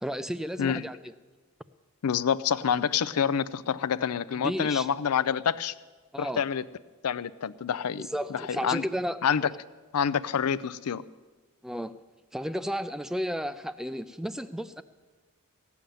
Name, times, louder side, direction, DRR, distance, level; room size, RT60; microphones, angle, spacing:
voice 1, 0.0-1.1 4.3-4.9 6.1-6.4 8.0-9.2 11.6-11.9 12.3-14.8, equal, ahead, 13 dB, 0.3 m, -33 dB
voice 2, 2.0-5.7 6.2-6.6 7.0-8.8 9.2-9.5 9.9-11.0, left 7 dB, 90° left, 17 dB, 0.5 m, -27 dB
15.5 x 7.1 x 9.1 m, 1.3 s
head